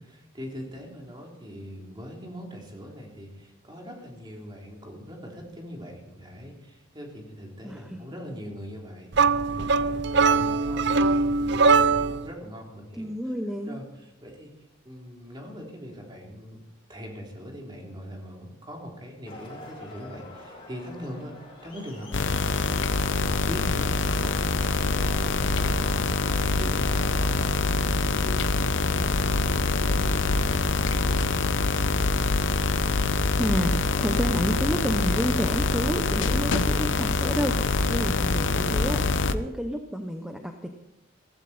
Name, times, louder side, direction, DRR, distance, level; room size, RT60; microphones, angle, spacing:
voice 1, 0.0-13.1 13.7-14.5 14.8-16.6 16.9-21.3 21.6-31.9, equal, 25° right, 0 dB, 3.3 m, -41 dB
voice 2, 7.6-8.1 13.0-13.8 33.4-39.0 39.3-40.7, equal, 5° right, 5 dB, 0.8 m, -30 dB
sound 1, 9.1-12.3, right 4 dB, 60° right, 0.6 m, -21 dB
Crowd, 19.3-27.4, left 1 dB, 25° left, 6.9 m, -45 dB
sound 2, 22.1-39.3, left 3 dB, 65° left, 0.7 m, -25 dB
16.5 x 15.5 x 4.3 m, 0.91 s
head